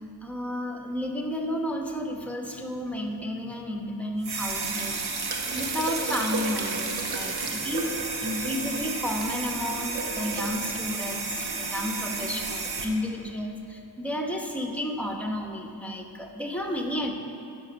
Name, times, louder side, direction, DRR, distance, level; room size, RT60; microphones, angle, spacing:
voice 1, 0.0-5.2 5.5-17.1, left 1 dB, 5° left, 2 dB, 1.0 m, -32 dB
sound 1, 4.2-12.9, right 4 dB, 80° right, 0.9 m, -31 dB
11.0 x 5.2 x 5.4 m, 2.6 s
wide cardioid pair, 65°, 38 cm